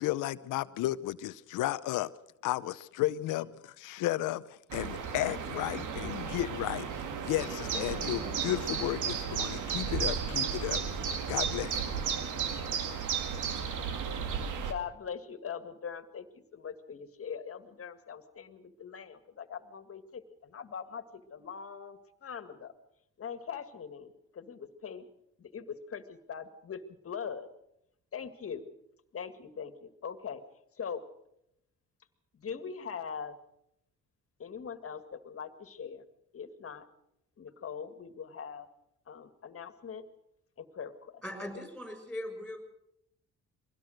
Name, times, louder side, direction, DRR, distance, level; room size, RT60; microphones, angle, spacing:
voice 1, 0.0-2.1 2.4-6.9 7.2-10.8 11.3-12.0, left 15 dB, 90° left, 0.7 m, -33 dB
sound 1, 4.7-14.7, right 6 dB, 80° right, 2.2 m, -34 dB
voice 2, 14.7-16.3 16.5-22.7 23.2-25.1 25.4-27.5 28.1-28.7 29.1-30.4 30.8-31.0 32.3-33.3 34.4-36.0 36.3-36.9 37.4-38.7 39.1-40.0 40.6-41.2, left 7 dB, 50° left, 2.0 m, -41 dB
voice 3, 41.2-42.6, left 1 dB, ahead, 6.3 m, -40 dB
23.0 x 17.5 x 6.5 m
cardioid pair, 90°, 30 cm